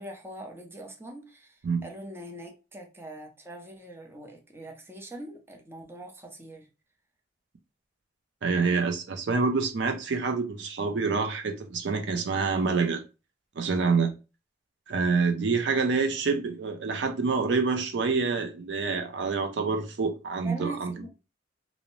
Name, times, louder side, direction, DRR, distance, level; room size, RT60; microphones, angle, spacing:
voice 1, 0.0-6.7 20.4-21.1, right 1 dB, 15° right, 0.5 m, -42 dB
voice 2, 8.4-13.0 13.6-14.1 14.9-21.1, right 4 dB, 70° right, 0.5 m, -27 dB
2.5 x 2.0 x 3.0 m
head